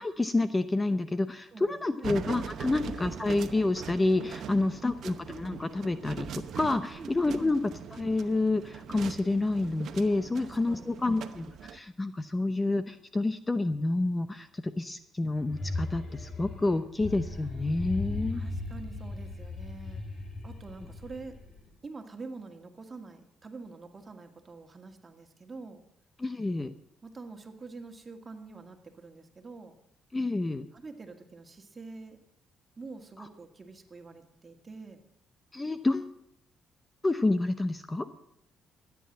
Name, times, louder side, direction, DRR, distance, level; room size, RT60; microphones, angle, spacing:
voice 1, 0.0-11.5 11.7-18.4 26.2-26.7 30.1-30.7 35.5-36.1 37.0-38.1, left 2 dB, 20° left, 11 dB, 0.7 m, -29 dB
voice 2, 1.5-2.1 7.0-7.1 10.3-10.9 11.2-11.3 18.3-20.0 20.4-21.4 21.8-25.8 27.0-29.8 30.7-32.2 32.8-35.0, right 3 dB, 30° right, 5 dB, 2.0 m, -46 dB
sound 1, 2.0-11.8, right 8 dB, 70° right, 0.9 m, -42 dB
sound 2, 15.4-21.7, left 3 dB, 50° left, 3.3 m, -37 dB
13.0 x 9.5 x 7.5 m, 0.76 s
cardioid pair, 90°, 0 cm